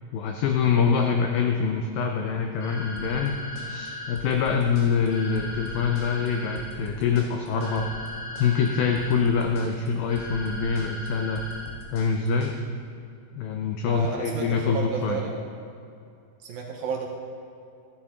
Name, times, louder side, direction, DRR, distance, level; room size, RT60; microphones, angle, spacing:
voice 1, 0.1-3.4 3.7-7.9 8.4-11.4 11.9-12.6 13.3-15.2, left 6 dB, 90° left, 3 dB, 2.0 m, -25 dB
sound 1, 2.6-4.1 5.1-6.6 7.6-9.1 10.1-11.6, left 2 dB, 55° left, 1.9 m, -37 dB
sound 2, 3.0-12.6, left 1 dB, 70° left, 3.7 m, -43 dB
voice 2, 13.9-15.4 16.4-17.1, right 5 dB, 75° right, 0 dB, 2.3 m, -31 dB
15.5 x 11.5 x 3.7 m, 2.5 s
omnidirectional pair, 5.0 m